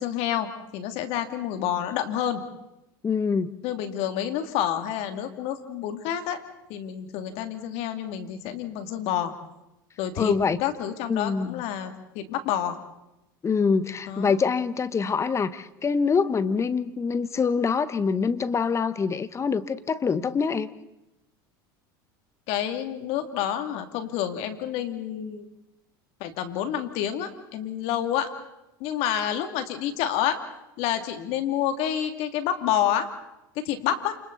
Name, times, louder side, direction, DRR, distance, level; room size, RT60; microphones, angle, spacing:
voice 1, 0.0-2.4 3.6-6.4 6.7-9.3 10.0-10.3 10.6-12.8 14.1-14.4 22.5-25.5 26.2-28.3 28.8-30.4 30.8-33.1 33.5-34.1, left 10 dB, 60° left, 7 dB, 2.8 m, -28 dB
voice 2, 3.0-3.5 10.2-10.6 11.1-11.6 13.4-20.7, left 5 dB, 25° left, 14 dB, 1.3 m, -25 dB
29.5 x 28.0 x 4.2 m, 0.90 s
supercardioid pair, 100°, 12 cm